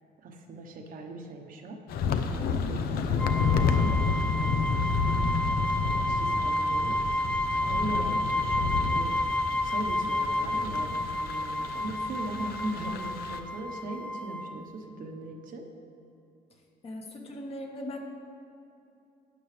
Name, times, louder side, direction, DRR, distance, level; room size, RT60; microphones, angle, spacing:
voice 1, 0.2-3.9 4.3-5.0 5.5-5.6 6.1-9.1 9.6-15.6, right 1 dB, 55° right, 3 dB, 1.1 m, -40 dB
sound 1, 1.9-13.4, left 5 dB, 65° left, 0.7 m, -30 dB
sound 2, 3.2-14.6, left 1 dB, 5° left, 0.5 m, -30 dB
voice 2, 16.5-18.0, left 1 dB, 35° left, 1 dB, 1.4 m, -40 dB
12.5 x 8.7 x 3.3 m, 2.8 s
cardioid pair, 110°, 17 cm